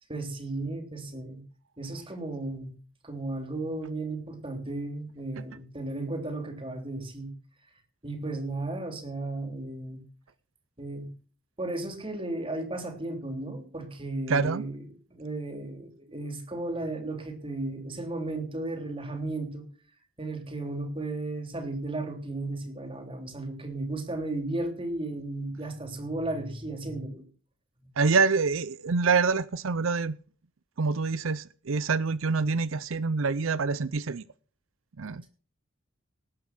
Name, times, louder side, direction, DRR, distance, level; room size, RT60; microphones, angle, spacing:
voice 1, 0.1-1.4 1.8-2.7 3.0-7.3 8.0-10.0 10.8-11.1 11.6-14.8 15.1-19.6 20.2-27.2 27.8-27.9, right 2 dB, 25° right, 5 dB, 3.4 m, -34 dB
voice 2, 14.3-14.6 28.0-30.2 30.8-34.2 35.0-35.2, right 4 dB, 80° right, 17 dB, 0.6 m, -26 dB
19.0 x 9.1 x 6.0 m, 0.42 s
head